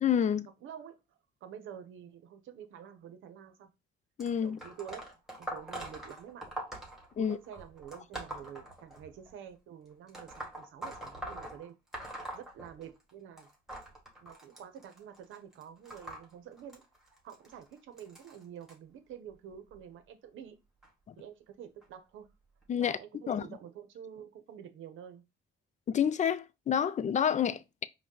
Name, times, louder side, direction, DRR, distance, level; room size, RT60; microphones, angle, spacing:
voice 1, 0.0-0.5 4.2-4.6 7.2-7.4 21.1-21.2 22.7-23.0 23.3-23.4 25.9-27.8, left 8 dB, 35° left, 0.4 m, -28 dB
voice 2, 0.6-3.7 4.4-5.1 5.4-6.5 7.2-11.8 12.0-13.5 14.2-16.8 17.2-20.6 21.2-22.3 22.8-25.2, right 9 dB, 80° right, 0.8 m, -48 dB
sound 1, 4.2-9.3 10.1-13.1 13.4-18.7 19.5-19.8 20.8-20.9 21.8-21.9 22.6-22.7, right 1 dB, ahead, 1.7 m, -44 dB
5.0 x 2.2 x 3.8 m
cardioid pair, 90°, 20 cm